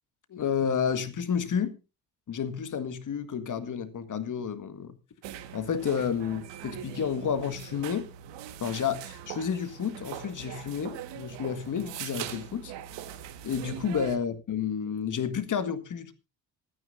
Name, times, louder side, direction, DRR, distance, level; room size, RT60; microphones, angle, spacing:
voice 1, 0.3-1.8 2.3-5.0 5.5-8.1 8.6-12.7 13.4-16.1, left 7 dB, 40° left, 1.8 m, -30 dB
sound 1, 5.2-14.2, right 11 dB, 60° right, 1.7 m, -41 dB
26.5 x 9.6 x 2.6 m
hypercardioid pair, 55°, 47 cm